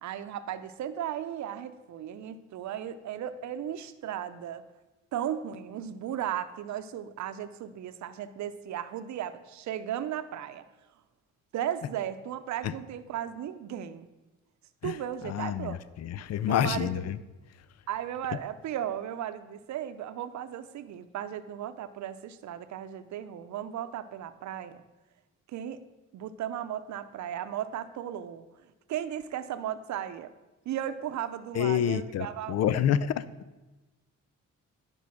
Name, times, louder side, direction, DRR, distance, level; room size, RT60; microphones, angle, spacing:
voice 1, 0.0-4.6 5.1-10.7 11.5-14.1 14.8-15.8 16.4-17.0 17.9-24.8 25.5-25.8 26.1-30.3 30.7-32.7, right 10 dB, 65° right, 12 dB, 0.7 m, -36 dB
voice 2, 15.2-17.2 31.5-33.2, left 9 dB, 60° left, 17 dB, 0.5 m, -28 dB
10.5 x 5.3 x 6.0 m, 1.1 s
cardioid pair, 90°, 30 cm